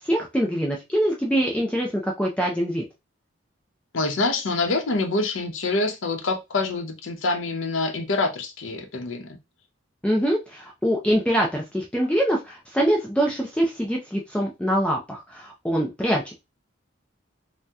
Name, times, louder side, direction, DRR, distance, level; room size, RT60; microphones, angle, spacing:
voice 1, 0.0-2.8 10.0-16.4, equal, 5° left, 0.4 m, -24 dB
voice 2, 3.9-9.3, left 3 dB, 80° left, 0.7 m, -26 dB
2.7 x 2.1 x 3.4 m
head